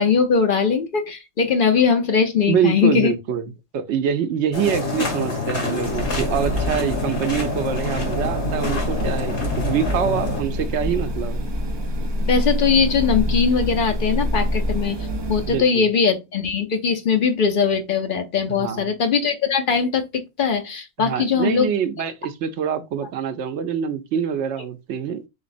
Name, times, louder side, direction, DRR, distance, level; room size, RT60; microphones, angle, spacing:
voice 1, 0.0-3.1 12.3-15.0 15.3-21.7 22.0-22.1, left 6 dB, 55° left, 0.7 m, -20 dB
voice 2, 2.5-11.5 15.5-15.9 18.5-18.9 21.0-25.3, right 8 dB, 85° right, 0.9 m, -25 dB
sound 1, 4.5-10.4, left 3 dB, 80° left, 1.5 m, -26 dB
sound 2, 5.8-15.6, equal, 35° right, 0.4 m, -26 dB
4.1 x 4.0 x 2.5 m
omnidirectional pair, 1.2 m